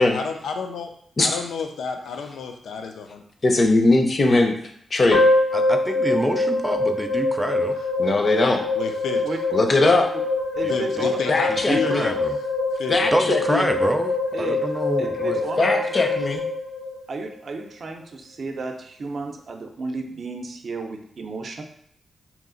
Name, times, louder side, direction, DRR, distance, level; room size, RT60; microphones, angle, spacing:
voice 1, 0.0-0.9 1.2-3.2 8.0-8.1 8.8-9.3 10.7-12.2 12.8-13.1, left 5 dB, 90° left, 4 dB, 0.4 m, -30 dB
voice 2, 3.4-4.5 4.9-5.2 8.0-8.6 9.5-10.1 11.3-12.0 12.9-13.7 15.6-16.4, left 2 dB, 45° left, 4 dB, 0.6 m, -20 dB
sound 1, 5.1-17.3, left 2 dB, 70° left, 0.9 m, -24 dB
voice 3, 5.5-7.8 10.6-10.7 11.0-11.1 11.7-12.4 13.1-15.4, equal, 5° right, 6 dB, 0.4 m, -26 dB
voice 4, 9.8-10.2 10.5-11.3 13.3-13.4 14.3-14.6 15.0-15.8 17.1-21.6, right 3 dB, 60° right, 4 dB, 0.5 m, -32 dB
2.9 x 2.4 x 3.8 m, 0.68 s
cardioid pair, 75°, 0 cm